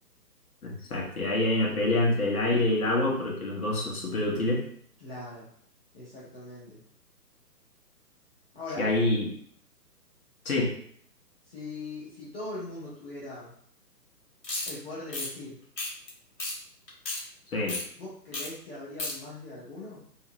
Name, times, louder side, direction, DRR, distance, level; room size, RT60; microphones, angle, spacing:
voice 1, 0.6-4.6 8.8-9.3 10.4-10.7 17.5-17.8, left 2 dB, 60° left, -3 dB, 1.0 m, -26 dB
voice 2, 5.0-5.5 5.9-6.8 8.5-8.9 11.5-13.5 14.7-15.6 18.0-20.0, left 2 dB, 35° left, -8 dB, 0.8 m, -40 dB
sound 1, 14.4-14.7 15.1-15.3 15.8-16.1 16.4-16.5 16.9-17.2 17.7-17.8 18.3-18.5 18.7-19.1, left 2 dB, 80° left, 1.1 m, -33 dB
2.7 x 2.0 x 2.6 m, 0.63 s
figure-of-eight pair, 135°, 50 cm